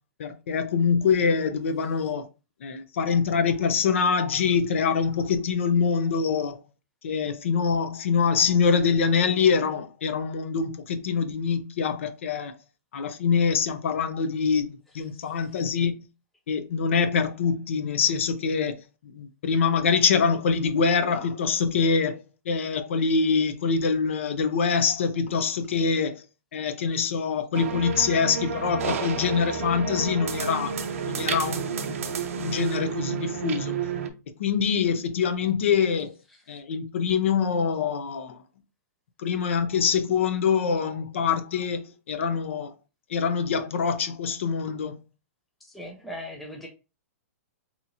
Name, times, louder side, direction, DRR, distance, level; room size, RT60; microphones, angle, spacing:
voice 1, 0.2-2.3 2.6-6.6 7.0-12.6 12.9-15.9 16.5-18.8 19.1-26.2 26.5-30.7 31.0-33.7 34.4-36.1 36.5-38.4 39.2-42.7 43.1-44.9, left 6 dB, 55° left, 0.6 m, -24 dB
sound 1, 27.5-34.1, right 6 dB, 65° right, 0.6 m, -30 dB
voice 2, 45.6-46.7, equal, ahead, 0.4 m, -40 dB
4.2 x 2.9 x 2.4 m
hypercardioid pair, 180°, 8 cm